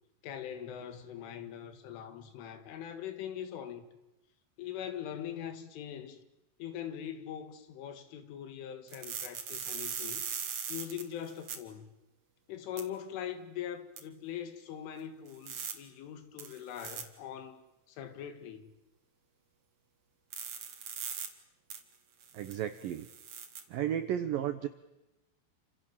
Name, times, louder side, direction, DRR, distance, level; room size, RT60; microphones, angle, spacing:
voice 1, 0.2-3.9 4.6-6.2 6.6-10.2 10.7-11.9 12.5-18.7, left 9 dB, 80° left, 4.4 m, -42 dB
sound 1, 8.9-11.6 12.8-12.9 14.0-14.1 15.3-15.7 16.4-17.0 20.3-21.3 21.7-21.8 22.2-23.6, right 7 dB, 45° right, 2.8 m, -40 dB
voice 2, 22.3-23.1 23.7-24.7, right 10 dB, 80° right, 2.0 m, -33 dB
29.0 x 27.0 x 7.3 m
omnidirectional pair, 5.5 m